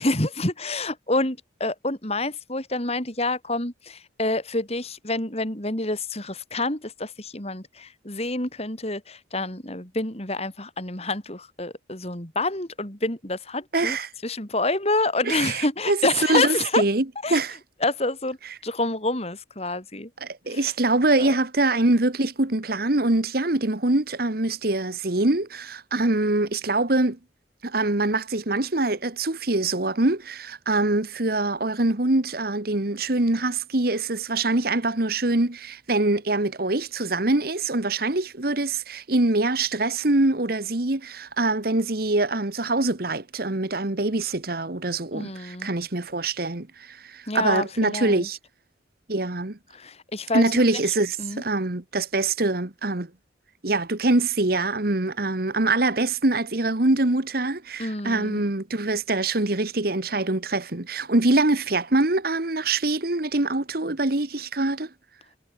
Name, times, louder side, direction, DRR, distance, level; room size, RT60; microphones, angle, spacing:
voice 1, 0.0-14.0 14.2-16.8 17.2-17.4 17.8-18.4 18.6-20.1 20.5-20.6 21.2-21.3 45.1-45.7 47.3-48.3 49.7-50.8 51.2-51.4 57.8-58.4, left 2 dB, 35° left, 4.6 m, -28 dB
voice 2, 13.7-14.1 15.2-17.0 17.3-17.6 20.2-27.2 27.6-48.4 49.1-49.6 50.3-53.1 53.6-64.9, right 2 dB, 55° right, 1.5 m, -24 dB
head